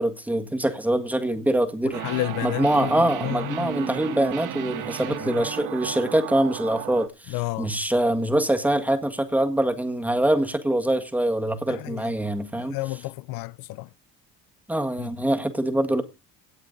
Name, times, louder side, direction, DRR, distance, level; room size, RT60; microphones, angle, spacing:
voice 1, 0.0-2.0 2.4-12.8 14.7-16.0, right 1 dB, 5° right, 1.7 m, -24 dB
voice 2, 1.8-2.9 3.2-3.7 5.1-5.4 7.3-7.7 11.7-12.1 12.5-13.9 15.0-15.1, left 19 dB, 75° left, 0.5 m, -31 dB
sound 1, 1.9-7.1, right 12 dB, 60° right, 1.8 m, -34 dB
17.5 x 8.7 x 3.9 m
cardioid pair, 120°, 35 cm